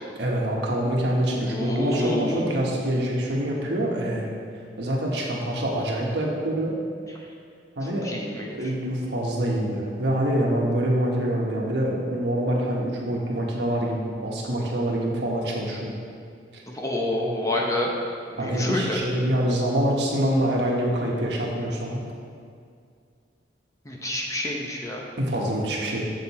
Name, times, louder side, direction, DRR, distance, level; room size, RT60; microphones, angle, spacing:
voice 1, 0.2-4.3 4.8-6.8 7.8-8.1 8.5-15.9 16.5-16.6 17.1-17.3 18.4-22.0 25.2-26.0, right 1 dB, 70° right, -2 dB, 1.4 m, -25 dB
voice 2, 1.4-2.8 7.8-8.6 16.7-17.9 18.3-19.0 23.8-25.0, left 1 dB, 20° left, -1 dB, 0.9 m, -28 dB
7.5 x 6.6 x 4.3 m, 2.3 s
head